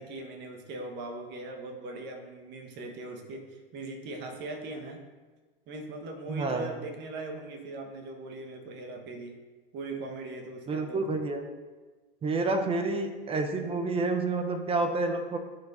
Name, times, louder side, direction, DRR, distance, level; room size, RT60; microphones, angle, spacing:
voice 1, 0.0-5.0 5.7-9.4 9.7-11.0, right 2 dB, 35° right, 3 dB, 1.2 m, -40 dB
voice 2, 6.3-6.7 10.7-11.4 12.2-15.4, right 3 dB, 20° right, 5 dB, 0.7 m, -29 dB
11.5 x 4.5 x 2.6 m, 1.3 s
hypercardioid pair, 100°, 29 cm